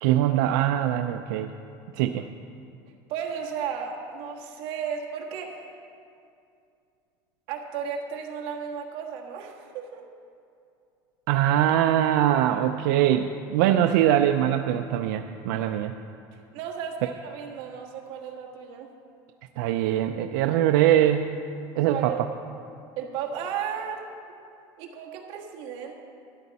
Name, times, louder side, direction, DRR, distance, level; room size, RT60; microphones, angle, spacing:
voice 1, 0.0-1.5 1.9-2.3 11.3-15.9 19.6-21.3 21.7-22.1, right 11 dB, 85° right, 7 dB, 0.4 m, -22 dB
voice 2, 3.1-5.7 7.5-10.0 16.5-18.9 21.8-22.2 23.0-24.1 24.8-25.9, right 7 dB, 55° right, 0 dB, 1.5 m, -34 dB
13.5 x 11.0 x 4.1 m, 2.5 s
cardioid pair, 175°, 10 cm